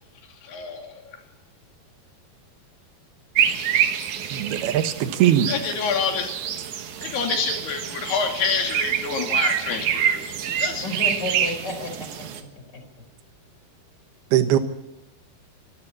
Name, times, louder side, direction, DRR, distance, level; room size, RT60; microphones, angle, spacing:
voice 1, 0.4-1.1 5.5-6.3 7.0-10.9, left 5 dB, 80° left, 3 dB, 4.8 m, -27 dB
sound 1, 3.3-12.4, right 9 dB, 60° right, 2.3 m, -26 dB
voice 2, 4.3-5.5 14.3-14.6, right 11 dB, 75° right, 10 dB, 3.1 m, -20 dB
voice 3, 10.8-12.8, left 1 dB, 25° left, 4 dB, 4.8 m, -32 dB
24.0 x 13.0 x 8.6 m, 0.92 s
omnidirectional pair, 4.6 m